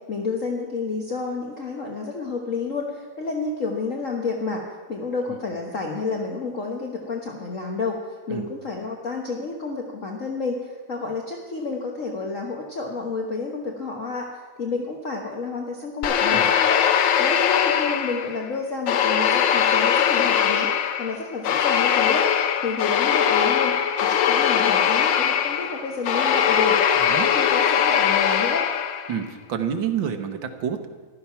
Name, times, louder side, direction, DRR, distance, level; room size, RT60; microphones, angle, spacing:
voice 1, 0.1-4.6 4.9-8.0 8.3-16.8 17.2-20.7 21.0-22.3 22.6-23.8 24.1-26.8 27.1-28.7, left 4 dB, 45° left, 0 dB, 1.4 m, -30 dB
sound 1, 16.0-18.5 18.9-29.2, left 8 dB, 70° left, 1.4 m, -21 dB
voice 2, 27.0-27.3 29.1-30.9, right 8 dB, 70° right, 7 dB, 1.8 m, -28 dB
14.5 x 12.0 x 5.8 m, 1.4 s
omnidirectional pair, 2.2 m